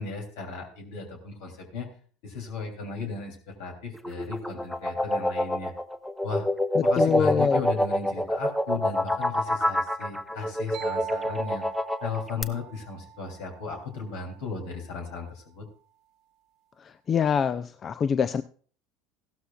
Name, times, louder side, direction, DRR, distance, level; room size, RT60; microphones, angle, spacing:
voice 1, 0.0-1.9 2.2-5.7 6.2-6.5 6.8-11.7 12.0-15.7, left 4 dB, 70° left, 2 dB, 3.2 m, -35 dB
sound 1, 3.9-12.4, left 1 dB, 10° left, 0.8 m, -26 dB
voice 2, 6.8-7.6 17.1-18.4, left 7 dB, 35° left, 13 dB, 0.4 m, -24 dB
sound 2, 10.7-14.4, right 11 dB, 55° right, 1.0 m, -42 dB
15.5 x 12.5 x 2.4 m, 0.44 s
hypercardioid pair, 80°, 0 cm